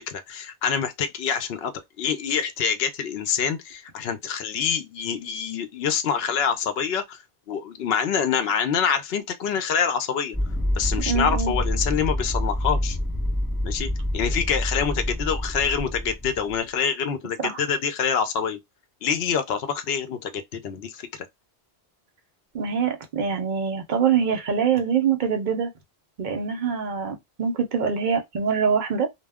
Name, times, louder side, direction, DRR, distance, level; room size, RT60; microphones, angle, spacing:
voice 1, 0.0-7.2 7.5-10.4 10.8-13.0 13.6-18.6 19.0-21.3, left 7 dB, 70° left, 0.8 m, -26 dB
sound 1, 10.3-16.6, left 1 dB, ahead, 0.8 m, -27 dB
voice 2, 11.1-11.5 17.4-17.5 22.5-25.7 26.2-29.1, right 6 dB, 55° right, 0.7 m, -24 dB
2.2 x 2.0 x 3.4 m
omnidirectional pair, 1.1 m